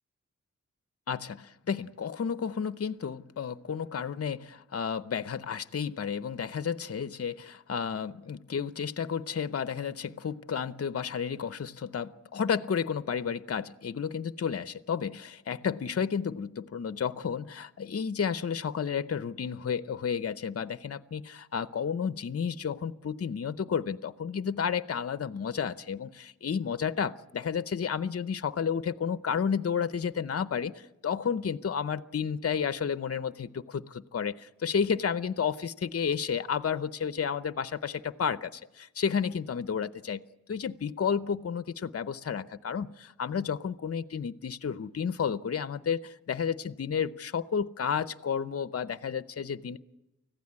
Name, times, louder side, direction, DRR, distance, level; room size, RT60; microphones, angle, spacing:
voice 1, 1.1-40.2 40.5-49.8, left 7 dB, 50° left, 13 dB, 0.7 m, -32 dB
24.5 x 15.5 x 8.6 m, 0.98 s
wide cardioid pair, 105°, 30 cm